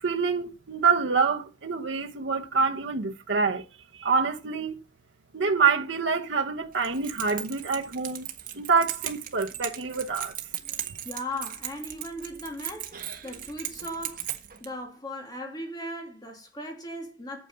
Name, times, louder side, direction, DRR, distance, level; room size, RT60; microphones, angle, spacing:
voice 1, 0.0-3.6 4.0-4.8 5.3-8.3 8.5-10.3, right 5 dB, 75° right, 0.9 m, -26 dB
Keys jangling, 6.7-14.7, right 11 dB, 45° right, 1.5 m, -37 dB
voice 2, 11.0-12.9 13.2-14.3 14.6-17.5, left 1 dB, 20° left, 2.6 m, -37 dB
8.8 x 7.8 x 5.6 m
head